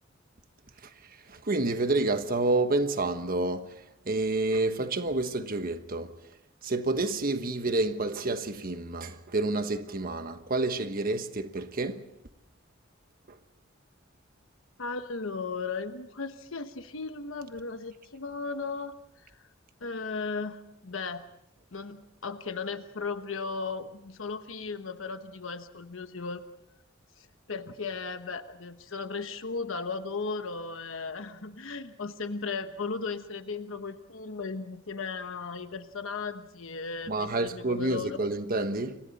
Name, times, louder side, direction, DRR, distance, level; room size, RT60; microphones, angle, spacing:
voice 1, 1.3-6.1 6.6-12.0 13.3-13.4 37.1-39.0, right 2 dB, 45° right, 1.3 m, -29 dB
voice 2, 14.8-19.0 19.8-21.2 21.7-26.4 27.2-38.2, left 4 dB, 80° left, 1.1 m, -36 dB
29.5 x 24.0 x 4.1 m
head